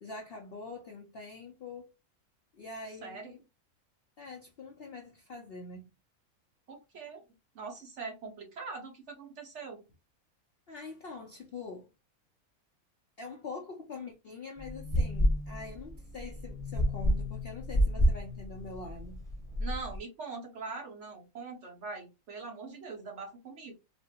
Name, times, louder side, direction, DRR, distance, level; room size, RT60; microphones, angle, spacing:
voice 1, 0.0-1.9 2.5-3.4 4.2-5.9 10.7-11.9 13.2-19.2, left 4 dB, 55° left, 0.7 m, -44 dB
voice 2, 3.0-3.3 6.7-7.2 7.5-9.8 19.6-23.7, right 4 dB, 55° right, 1.4 m, -42 dB
sound 1, 14.6-20.0, equal, 5° left, 0.9 m, -30 dB
4.2 x 2.1 x 2.8 m
omnidirectional pair, 1.5 m